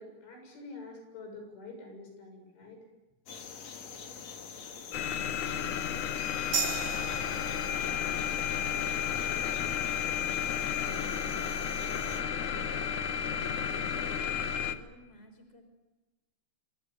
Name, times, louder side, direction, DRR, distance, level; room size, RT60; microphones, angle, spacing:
voice 1, 0.0-2.8, left 3 dB, 85° left, 4 dB, 9.1 m, -47 dB
sound 1, 3.3-12.2, left 6 dB, 45° left, 2.7 m, -45 dB
sound 2, 4.9-14.7, left 8 dB, 65° left, 1.9 m, -32 dB
sound 3, 6.5-13.6, right 6 dB, 60° right, 5.3 m, -41 dB
voice 2, 11.2-12.0 13.5-15.6, left 1 dB, 15° left, 7 dB, 4.6 m, -55 dB
27.0 x 24.5 x 8.9 m, 1.2 s
omnidirectional pair, 5.3 m